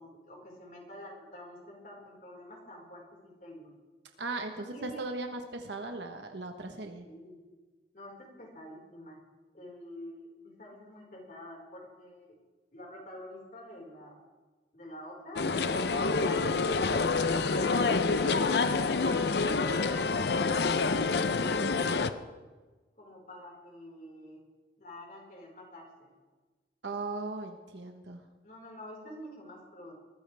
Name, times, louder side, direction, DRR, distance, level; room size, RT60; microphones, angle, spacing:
voice 1, 0.0-3.7 4.5-5.0 7.0-7.4 7.9-9.2 9.5-12.3 12.7-14.2 14.7-17.0 17.4-21.1 21.4-22.2 23.0-24.4 24.8-26.1 28.4-29.9, left 1 dB, 45° left, -2 dB, 4.9 m, -47 dB
voice 2, 4.2-7.0 17.5-17.6 26.8-28.2, right 3 dB, 80° right, 4 dB, 1.2 m, -38 dB
sound 1, 15.4-22.1, left 4 dB, 70° left, 0.7 m, -27 dB
21.5 x 15.0 x 3.5 m, 1.3 s
head